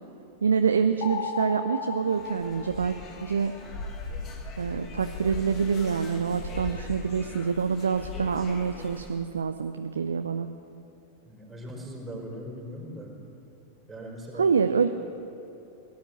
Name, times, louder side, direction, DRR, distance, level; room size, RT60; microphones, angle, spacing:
voice 1, 0.4-3.5 4.6-10.5 14.3-14.9, right 6 dB, 70° right, 8 dB, 0.5 m, -26 dB
sound 1, 1.0-3.5, left 5 dB, 50° left, 1.5 m, -35 dB
sound 2, 2.0-9.2, left 3 dB, 30° left, 2.0 m, -40 dB
voice 2, 11.2-13.1 13.9-14.5, equal, 10° right, -2 dB, 4.3 m, -40 dB
17.5 x 10.5 x 7.8 m, 2.7 s
figure-of-eight pair, 90°, 0 cm